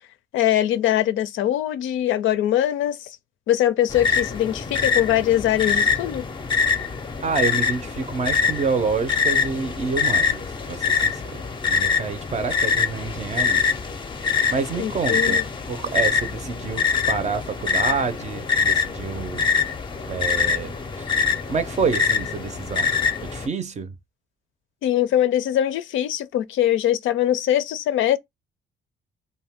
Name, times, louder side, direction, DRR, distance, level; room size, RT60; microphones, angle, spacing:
voice 1, 0.3-3.1 3.5-6.3 14.8-15.4 24.8-28.2, left 12 dB, 75° left, 0.4 m, -22 dB
sound 1, 3.9-23.5, left 5 dB, 25° left, 0.5 m, -24 dB
voice 2, 7.2-11.4 11.7-13.7 14.5-15.4 15.7-19.6 20.1-21.1 21.5-22.9 23.2-23.9, right 5 dB, 35° right, 0.5 m, -28 dB
2.6 x 2.2 x 3.4 m
cardioid pair, 90°, 20 cm